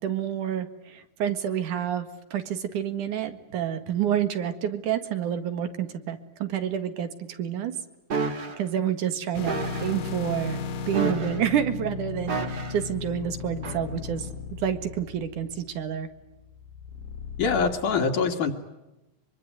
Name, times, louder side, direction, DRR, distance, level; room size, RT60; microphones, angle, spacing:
voice 1, 0.0-7.8 8.6-16.1, right 9 dB, 70° right, 10 dB, 3.2 m, -29 dB
sound 1, 8.1-8.6 9.5-9.9 10.9-11.5 12.3-12.9 13.6-13.8, right 4 dB, 30° right, 2.5 m, -30 dB
sound 2, 9.3-17.7, left 5 dB, 90° left, 3.6 m, -36 dB
voice 2, 17.4-18.5, left 5 dB, 65° left, 3 dB, 3.5 m, -24 dB
24.5 x 24.0 x 9.5 m, 0.99 s
omnidirectional pair, 3.8 m